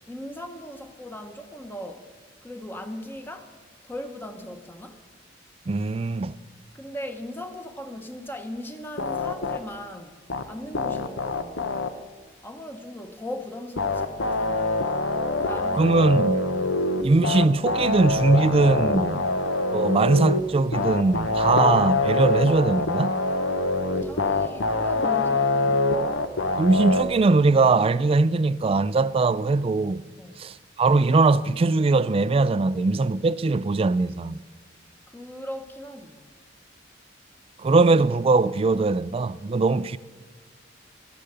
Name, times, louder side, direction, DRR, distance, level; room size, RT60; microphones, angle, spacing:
voice 1, 0.1-2.1 2.4-3.5 3.8-5.0 6.7-10.2 10.5-11.6 12.4-14.8 15.3-16.1 19.1-19.4 23.9-25.8 30.2-30.4 35.1-36.2, left 1 dB, 10° left, 1.0 m, -38 dB
voice 2, 5.7-6.4 15.8-16.4 17.0-19.2 19.7-23.2 26.6-30.0 30.4-34.4 37.6-40.0, right 3 dB, 30° right, 0.3 m, -21 dB
sound 1, 9.0-9.6 10.3-10.4 10.7-11.9 13.8-20.4 20.7-27.0, left 3 dB, 80° left, 0.9 m, -24 dB
13.0 x 10.0 x 6.8 m
head